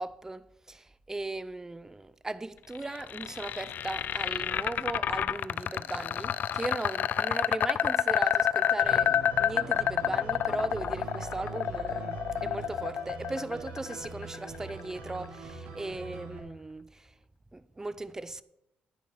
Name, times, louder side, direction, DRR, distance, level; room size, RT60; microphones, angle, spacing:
voice 1, 0.0-9.1 9.4-17.1 17.5-18.4, right 2 dB, 15° right, 0.5 m, -38 dB
sound 1, 2.7-14.8, left 9 dB, 60° left, 0.4 m, -29 dB
sound 2, 8.8-16.4, right 4 dB, 90° right, 2.6 m, -42 dB
10.0 x 9.9 x 4.5 m
cardioid pair, 90°, 3 cm